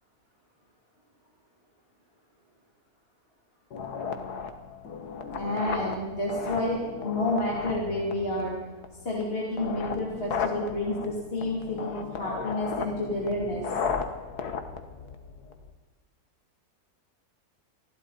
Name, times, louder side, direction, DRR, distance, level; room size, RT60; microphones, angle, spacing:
sound 1, 3.7-15.7, left 5 dB, 85° left, 1.8 m, -35 dB
voice 1, 5.2-8.5 9.0-13.8, left 1 dB, 40° left, -4 dB, 3.2 m, -30 dB
27.5 x 12.0 x 4.2 m, 1.2 s
omnidirectional pair, 1.6 m